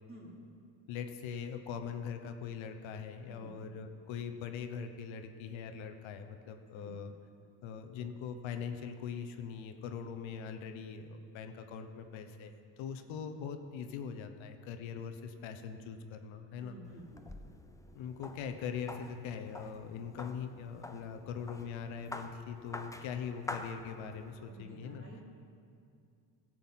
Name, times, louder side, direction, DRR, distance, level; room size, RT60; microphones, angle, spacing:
voice 1, 0.9-7.1 7.6-16.8 17.9-25.0, left 7 dB, 75° left, 7 dB, 0.9 m, -42 dB
voice 2, 16.6-17.3 24.5-25.2, right 2 dB, 25° right, -3 dB, 2.9 m, -52 dB
sound 1, 16.8-24.4, left 2 dB, 5° left, 0.5 m, -47 dB
13.5 x 7.8 x 5.7 m, 2.4 s
cardioid pair, 100°, 48 cm